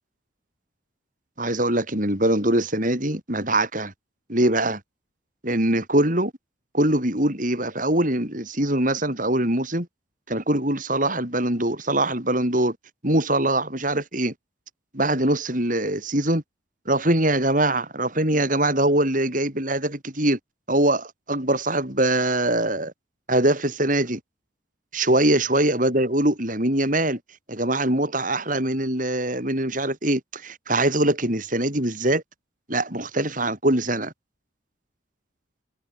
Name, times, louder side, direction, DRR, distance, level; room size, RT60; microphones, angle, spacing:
voice 1, 1.4-3.9 4.3-4.8 5.4-6.3 6.7-9.9 10.3-12.8 13.0-14.3 14.9-16.4 16.8-20.4 20.7-22.9 23.3-24.2 24.9-27.2 27.5-32.2 32.7-34.1, right 1 dB, 40° right, 6.3 m, -23 dB
head